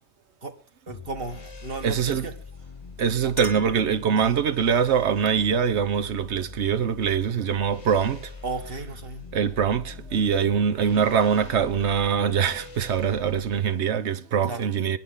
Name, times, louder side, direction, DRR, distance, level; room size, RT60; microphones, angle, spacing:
sound 1, 0.9-13.7, left 4 dB, 30° left, 1.0 m, -43 dB
voice 1, 0.9-2.4 3.2-3.3 4.2-4.4 8.4-9.2 14.4-14.6, right 3 dB, 55° right, 1.7 m, -34 dB
voice 2, 1.8-2.3 3.0-8.3 9.3-15.0, right 7 dB, 80° right, 1.1 m, -23 dB
Chink clink, 2.8-4.7, left 1 dB, 80° left, 2.1 m, -42 dB
22.5 x 9.9 x 3.8 m
omnidirectional pair, 1.2 m